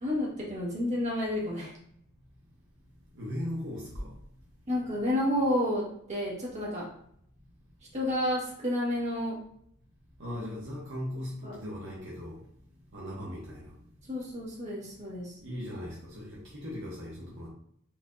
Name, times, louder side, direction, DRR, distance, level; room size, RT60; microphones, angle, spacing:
voice 1, 0.0-1.7 4.7-6.9 7.9-9.4 11.4-11.5 14.1-15.3, left 1 dB, 35° right, -4 dB, 1.4 m, -30 dB
voice 2, 3.2-4.1 10.2-12.4 12.9-13.7 15.4-17.5, equal, 60° right, -5 dB, 0.9 m, -38 dB
4.4 x 2.7 x 2.5 m, 0.69 s
head